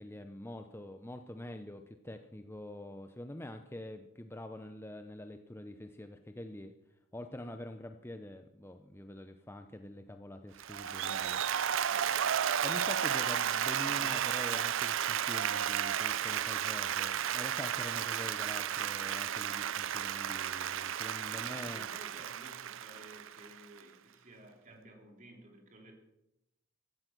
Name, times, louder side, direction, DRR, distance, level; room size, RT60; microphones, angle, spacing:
voice 1, 0.0-6.7 7.1-12.0 12.6-21.9, left 1 dB, 10° left, 7 dB, 0.6 m, -45 dB
Applause, 10.6-23.8, right 9 dB, 60° right, 0.5 m, -33 dB
voice 2, 13.8-14.2 21.3-25.9, right 1 dB, 35° right, 2 dB, 3.4 m, -55 dB
16.0 x 13.5 x 6.1 m, 0.87 s
head